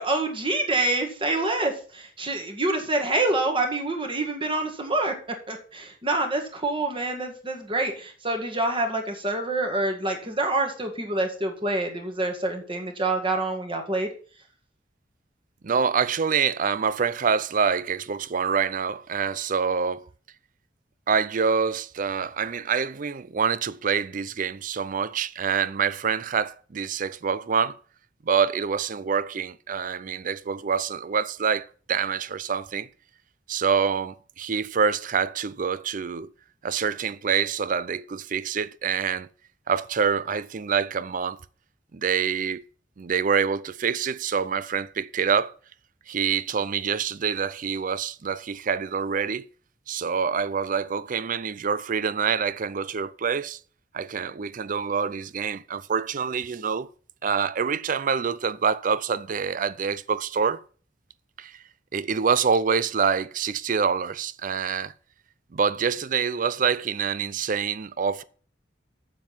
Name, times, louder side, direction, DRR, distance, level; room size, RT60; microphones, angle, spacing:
voice 1, 0.0-5.1 5.5-14.1, right 2 dB, 25° right, 1.9 m, -26 dB
voice 2, 15.6-20.1 21.1-27.8 28.2-32.9 33.5-36.3 36.6-39.3 39.7-41.4 41.9-42.6 43.0-45.5 46.1-49.5 49.9-53.6 53.9-56.9 57.2-60.6 61.4-61.6 61.9-64.9 65.5-68.2, right 6 dB, 45° right, 0.5 m, -26 dB
7.5 x 7.4 x 5.7 m
head